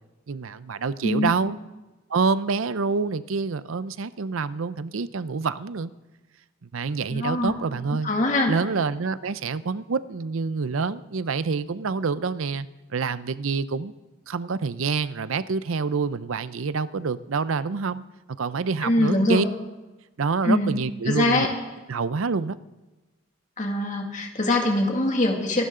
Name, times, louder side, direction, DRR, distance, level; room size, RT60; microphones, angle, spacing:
voice 1, 0.3-1.6 2.1-5.9 6.6-8.1 8.5-13.9 14.3-18.0 18.4-19.4 20.2-21.5 21.9-22.6, right 4 dB, 85° right, 15 dB, 0.6 m, -27 dB
voice 2, 7.1-7.5 8.0-8.5 18.8-19.4 20.4-20.7 21.1-21.5 23.6-25.7, left 2 dB, 40° left, 2 dB, 2.2 m, -23 dB
25.0 x 12.5 x 3.8 m, 1.2 s
head